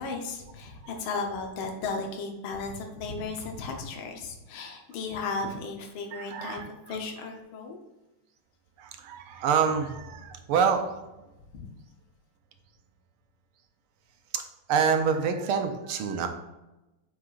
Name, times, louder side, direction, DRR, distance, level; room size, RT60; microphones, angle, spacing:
voice 1, 0.0-7.8 11.5-11.7, left 4 dB, 75° left, 2 dB, 1.7 m, -35 dB
voice 2, 6.1-7.0 8.8-10.8 14.3-16.3, right 6 dB, 80° right, 7 dB, 1.6 m, -27 dB
8.5 x 4.9 x 2.4 m, 1.0 s
omnidirectional pair, 2.3 m